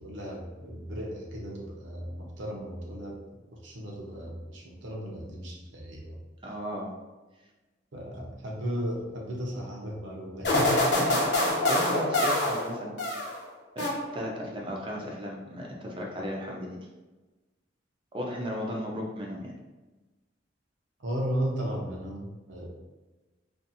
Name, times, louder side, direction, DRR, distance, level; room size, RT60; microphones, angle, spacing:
voice 1, 0.0-3.2 3.5-6.2 7.9-10.8 21.0-22.7, equal, 85° right, -2 dB, 0.7 m, -35 dB
voice 2, 6.4-6.9 10.7-10.8 11.1-13.0 13.3-13.4 13.8-13.9 14.1-16.8 18.1-19.5, equal, 30° right, -1 dB, 0.5 m, -35 dB
sound 1, 10.4-13.4 13.8-14.4, left 1 dB, 65° left, 0.7 m, -26 dB
2.6 x 2.5 x 2.6 m, 1.2 s
head